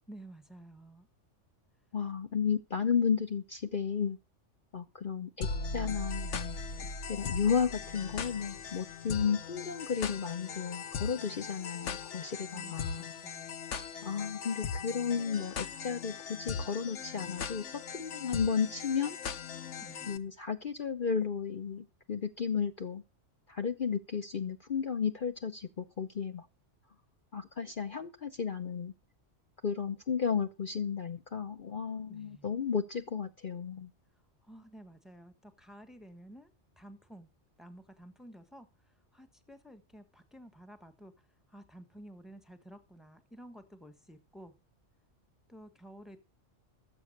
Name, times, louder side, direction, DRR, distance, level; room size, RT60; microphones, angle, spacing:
voice 1, 0.1-1.1 12.5-13.6 19.8-20.2 32.1-32.5 34.4-36.5 36.8-37.3 37.6-44.5 45.5-46.2, right 1 dB, ahead, 1.3 m, -52 dB
voice 2, 1.9-4.2 4.7-6.6 7.1-13.1 14.0-19.2 20.1-23.0 23.5-26.5 27.3-28.9 29.6-33.9, left 6 dB, 45° left, 1.0 m, -33 dB
sound 1, 5.4-20.2, left 5 dB, 75° left, 1.2 m, -39 dB
13.5 x 7.7 x 6.6 m
omnidirectional pair, 1.2 m